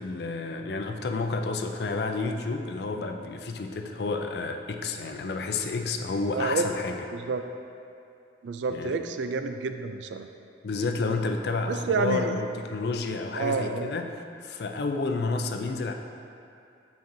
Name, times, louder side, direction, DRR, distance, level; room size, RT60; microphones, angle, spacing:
voice 1, 0.0-7.0 8.7-9.0 10.6-15.9, left 3 dB, 65° left, 5 dB, 0.4 m, -30 dB
voice 2, 6.3-6.6 7.1-7.4 8.4-10.3 11.7-12.4 13.4-13.9, right 4 dB, 85° right, 7 dB, 0.4 m, -29 dB
7.7 x 5.2 x 2.7 m, 2.6 s
head